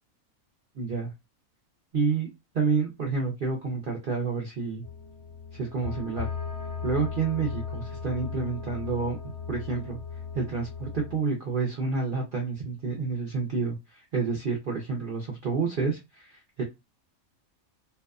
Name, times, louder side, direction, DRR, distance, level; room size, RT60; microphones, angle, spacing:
voice 1, 0.8-1.1 1.9-2.3 2.5-4.8 5.5-6.3 6.8-9.2 9.5-10.0 10.3-16.6, right 4 dB, 60° right, -1 dB, 0.5 m, -29 dB
sound 1, 4.8-11.2, left 6 dB, 30° left, 0.7 m, -37 dB
2.6 x 2.2 x 2.3 m, 0.23 s
omnidirectional pair, 1.5 m